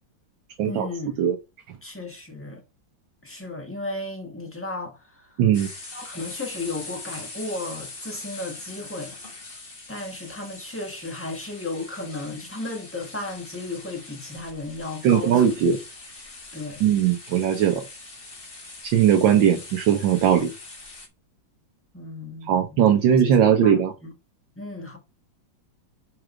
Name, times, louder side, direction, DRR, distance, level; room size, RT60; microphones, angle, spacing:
voice 1, 0.6-1.3 1.8-2.6 3.2-5.4 5.9-9.1 9.9-15.5 16.5-16.8 21.9-22.9 23.4-24.1 24.6-25.0, left 2 dB, 5° left, 1.5 m, -34 dB
voice 2, 5.4-5.7 15.0-15.8 16.8-17.8 18.8-20.5 22.5-23.9, right 9 dB, 70° right, 1.5 m, -19 dB
sound 1, 5.5-21.1, left 3 dB, 30° left, 1.5 m, -42 dB
6.5 x 4.9 x 4.5 m
omnidirectional pair, 2.2 m